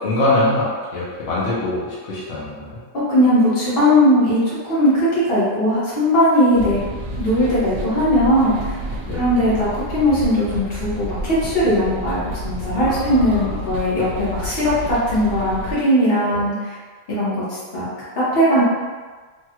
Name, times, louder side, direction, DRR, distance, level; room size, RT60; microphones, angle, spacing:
voice 1, 0.0-2.8 9.1-9.2 12.9-13.6 16.3-16.4, left 1 dB, 85° left, -7 dB, 1.1 m, -23 dB
voice 2, 2.9-6.8 7.2-8.8 9.1-16.8 17.1-17.9 18.2-18.6, equal, 55° left, -9 dB, 1.3 m, -19 dB
sound 1, 6.5-15.7, equal, 90° right, 0.9 m, -30 dB
3.4 x 2.3 x 2.9 m, 1.4 s
omnidirectional pair, 1.2 m